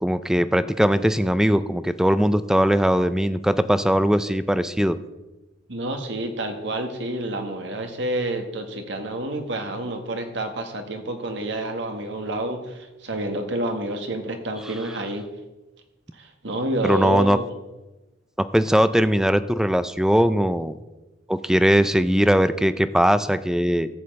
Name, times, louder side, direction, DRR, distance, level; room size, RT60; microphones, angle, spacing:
voice 1, 0.0-5.0 16.8-17.4 18.4-20.8 21.3-23.9, equal, 5° right, 13 dB, 0.4 m, -20 dB
voice 2, 5.7-15.2 16.2-17.5, right 1 dB, 70° right, 5 dB, 1.6 m, -29 dB
14.0 x 5.4 x 7.8 m, 1.1 s
head